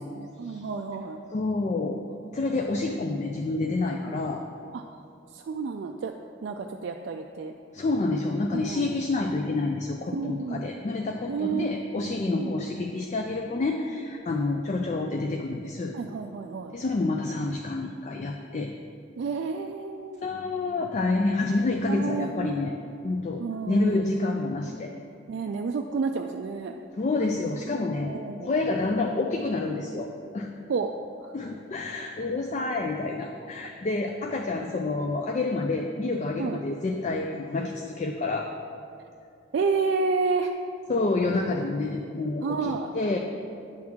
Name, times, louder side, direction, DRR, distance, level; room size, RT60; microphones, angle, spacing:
voice 1, 0.0-1.2 4.0-4.2 4.7-5.0 5.3-6.1 6.4-7.5 8.5-9.0 10.1-10.7 11.3-11.7 12.3-12.6 14.2-14.4 15.9-16.7 19.2-20.2 21.9-22.6 23.4-24.0 25.3-26.8 28.0-28.5 30.7-30.9 31.2-31.3 36.4-36.6 39.5-40.5 42.4-42.9, right 4 dB, 60° right, 3 dB, 0.3 m, -30 dB
voice 2, 1.3-2.0 2.3-4.4 7.7-15.9 16.7-18.7 20.2-22.7 23.0-24.9 27.0-28.1 28.4-30.5 31.3-38.5 40.9-43.2, left 3 dB, 35° left, 3 dB, 0.3 m, -28 dB
9.6 x 6.0 x 3.6 m, 2.4 s
head